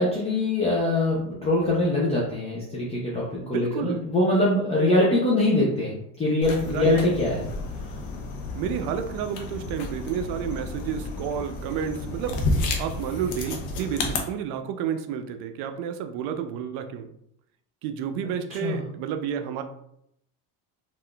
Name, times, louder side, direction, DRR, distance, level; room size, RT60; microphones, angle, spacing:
voice 1, 0.0-7.5 18.6-18.8, left 1 dB, 15° left, -6 dB, 0.5 m, -23 dB
voice 2, 3.4-4.1 6.7-7.0 8.5-12.4 12.8-17.1 17.8-19.6, right 8 dB, 75° right, 7 dB, 0.5 m, -30 dB
sound 1, 6.4-14.2, left 2 dB, 85° left, 0.7 m, -31 dB
3.5 x 2.5 x 2.2 m, 0.75 s
cardioid pair, 140°, 41 cm